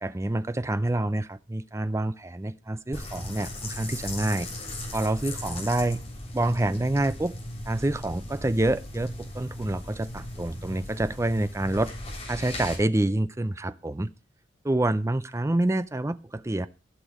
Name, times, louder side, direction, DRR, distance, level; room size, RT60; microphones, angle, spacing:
voice 1, 0.0-4.5 4.9-6.0 6.3-7.4 7.7-11.9 12.3-14.1 14.6-16.7, right 1 dB, 15° right, 14 dB, 0.5 m, -27 dB
sound 1, 2.9-12.8, left 1 dB, 35° left, 3.5 m, -37 dB
14.5 x 6.1 x 4.8 m, 0.31 s
head